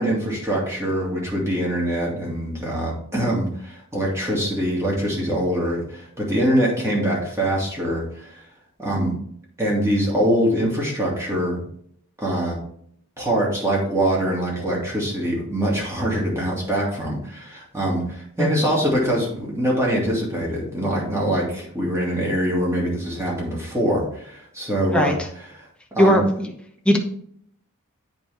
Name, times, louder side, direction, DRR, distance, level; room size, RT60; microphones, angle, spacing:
voice 1, 0.0-8.4 8.8-9.1 9.6-11.7 12.2-12.6 13.2-25.1 25.5-25.7 25.9-26.2, right 1 dB, 15° right, -4 dB, 2.3 m, -23 dB
voice 2, 26.0-26.5 26.8-27.0, equal, 5° left, 1 dB, 1.0 m, -18 dB
8.6 x 5.0 x 3.5 m, 0.66 s
head